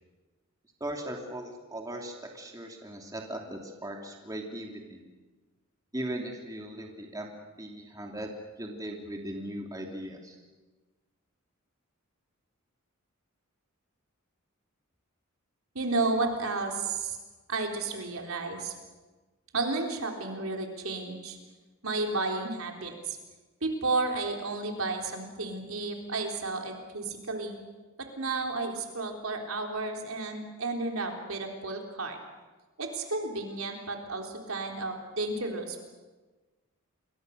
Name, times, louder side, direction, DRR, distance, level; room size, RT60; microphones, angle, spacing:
voice 1, 0.8-5.0 5.9-7.3 7.6-8.3 8.6-10.4, right 1 dB, 15° right, 1 dB, 2.8 m, -38 dB
voice 2, 15.7-17.2 17.5-18.7 19.5-21.4 21.8-23.2 23.6-27.6 28.0-32.2 32.8-35.8, right 3 dB, 75° right, 2 dB, 3.8 m, -32 dB
28.5 x 22.0 x 6.7 m, 1.3 s
head